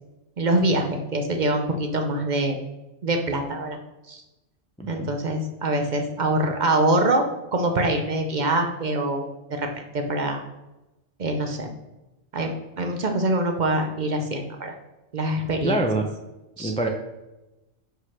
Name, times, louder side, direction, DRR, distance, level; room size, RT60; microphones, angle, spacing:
voice 1, 0.4-2.6 3.0-3.8 4.1-4.2 4.9-7.2 7.5-9.7 9.9-10.4 11.2-11.7 12.3-14.7 15.1-15.8 16.6-16.7, right 1 dB, 45° right, 4 dB, 0.7 m, -24 dB
voice 2, 15.6-16.1 16.6-16.9, right 2 dB, 10° left, 2 dB, 0.3 m, -25 dB
5.1 x 4.0 x 5.6 m, 1.0 s
omnidirectional pair, 1.2 m